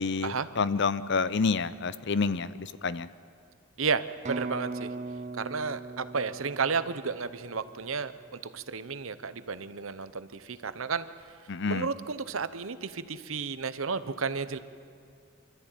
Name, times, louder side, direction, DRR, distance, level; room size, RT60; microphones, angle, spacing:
voice 1, 0.0-3.1 11.5-11.9, left 4 dB, 55° left, 16 dB, 0.6 m, -28 dB
voice 2, 3.8-4.9 5.3-11.1 11.7-14.6, right 5 dB, 75° right, 13 dB, 0.9 m, -32 dB
sound 1, 4.2-8.0, right 3 dB, 35° right, 0.8 m, -39 dB
25.5 x 13.5 x 9.1 m, 2.4 s
head